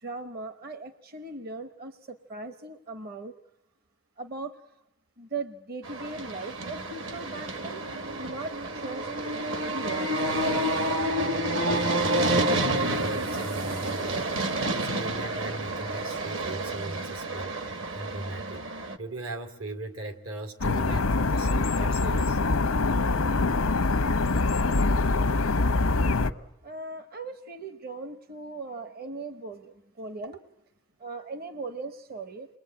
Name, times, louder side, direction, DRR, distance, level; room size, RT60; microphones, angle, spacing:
voice 1, 0.0-3.3 4.2-4.6 5.2-7.8 8.2-9.1 9.7-10.2 26.6-30.4 31.0-32.5, right 3 dB, 45° right, 10 dB, 0.9 m, -38 dB
sound 1, 5.8-19.0, right 1 dB, 65° right, 1.5 m, -29 dB
voice 2, 12.9-14.3 14.6-18.7 19.0-22.4, right 2 dB, 80° right, 7 dB, 2.5 m, -38 dB
sound 2, 20.6-26.3, left 3 dB, 90° left, 0.9 m, -24 dB
28.5 x 21.5 x 8.6 m, 0.92 s
head